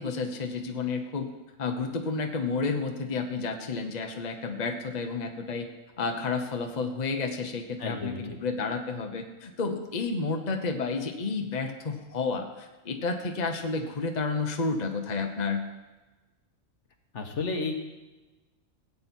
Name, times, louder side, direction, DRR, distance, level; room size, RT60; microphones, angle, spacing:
voice 1, 0.0-1.3 1.6-5.7 6.0-15.7, left 4 dB, 35° left, 4 dB, 0.9 m, -31 dB
voice 2, 7.8-8.4 17.1-17.8, left 3 dB, 60° left, 4 dB, 1.5 m, -32 dB
16.5 x 8.6 x 4.4 m, 1.2 s
omnidirectional pair, 1.4 m